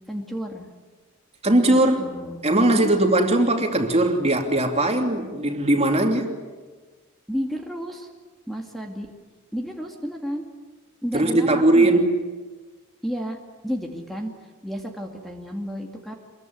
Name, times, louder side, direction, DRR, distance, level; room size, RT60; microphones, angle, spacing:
voice 1, 0.1-0.7 1.7-2.4 2.7-3.0 7.3-8.1 8.5-9.1 9.5-10.5 11.0-12.0 13.0-14.3 14.6-16.1, equal, ahead, 1 dB, 2.2 m, -32 dB
voice 2, 1.4-2.1 2.4-6.2 11.1-12.1, right 1 dB, 30° right, 3 dB, 2.9 m, -19 dB
26.5 x 22.0 x 9.5 m, 1.3 s
head